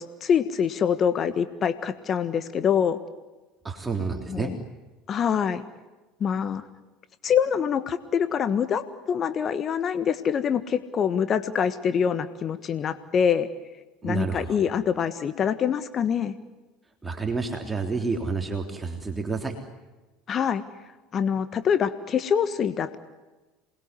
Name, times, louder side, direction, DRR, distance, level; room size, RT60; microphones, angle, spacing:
voice 1, 0.0-3.0 4.3-4.6 5.1-5.6 6.2-6.6 7.2-13.5 14.0-16.3 20.3-20.6 21.1-23.0, left 7 dB, 40° left, 12 dB, 1.4 m, -25 dB
voice 2, 3.6-4.5 14.0-14.6 17.0-19.6, right 4 dB, 15° right, 3 dB, 3.3 m, -29 dB
27.5 x 21.0 x 9.7 m, 1.2 s
hypercardioid pair, 75°, 0 cm